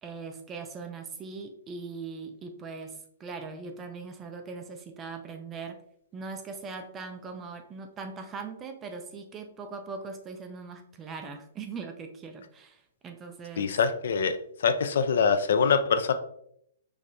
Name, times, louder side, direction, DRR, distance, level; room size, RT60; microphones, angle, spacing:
voice 1, 0.0-5.8 6.1-13.8, right 4 dB, 10° right, 6 dB, 0.3 m, -40 dB
voice 2, 13.6-14.4 14.6-16.1, left 6 dB, 60° left, 10 dB, 0.4 m, -24 dB
4.8 x 3.2 x 2.6 m, 0.71 s
hypercardioid pair, 175°, 0 cm